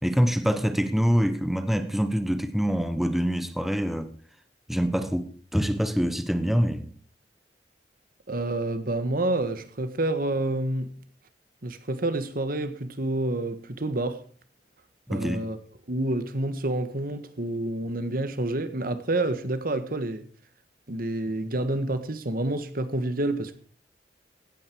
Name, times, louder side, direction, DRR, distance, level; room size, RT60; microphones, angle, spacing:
voice 1, 0.0-4.1 4.7-6.9 15.1-15.4, equal, ahead, 1.2 m, -25 dB
voice 2, 8.3-10.9 11.6-14.2 15.1-15.6 15.9-20.2 20.9-23.6, right 2 dB, 55° right, 1.5 m, -28 dB
16.5 x 9.7 x 4.6 m
head